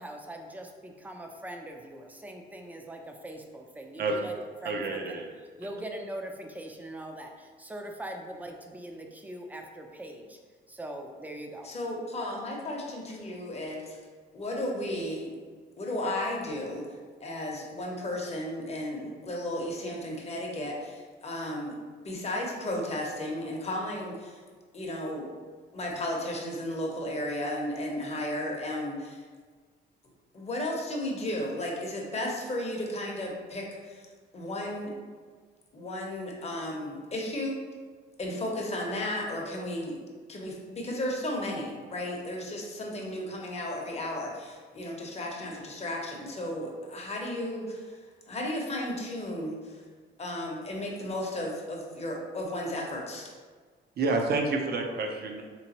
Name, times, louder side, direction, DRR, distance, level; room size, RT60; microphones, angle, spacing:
voice 1, 0.0-4.3 4.6-5.2 5.6-10.4 10.7-11.7, right 1 dB, 10° right, 2 dB, 0.4 m, -41 dB
voice 2, 4.0-4.3 4.6-5.3 54.0-55.5, right 3 dB, 55° right, 2 dB, 0.6 m, -29 dB
voice 3, 11.6-14.0 14.3-15.3 15.8-16.8 17.2-21.7 22.0-24.4 24.7-25.3 25.7-29.2 30.3-34.0 34.3-34.9 35.7-37.6 38.2-40.0 40.3-48.0 48.3-49.7 50.2-53.3, left 1 dB, 30° left, -1 dB, 0.8 m, -34 dB
3.4 x 3.0 x 2.9 m, 1.5 s
cardioid pair, 90°, 20 cm